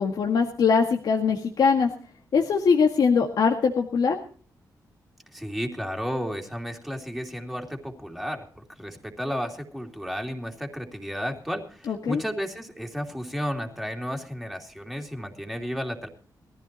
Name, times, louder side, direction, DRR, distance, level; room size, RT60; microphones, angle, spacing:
voice 1, 0.0-1.9 2.3-4.2 11.9-12.2, left 5 dB, 65° left, 3 dB, 2.0 m, -22 dB
voice 2, 5.3-16.1, equal, ahead, 1 dB, 2.9 m, -33 dB
21.5 x 15.0 x 3.0 m, 0.42 s
wide cardioid pair, 150°, 7 cm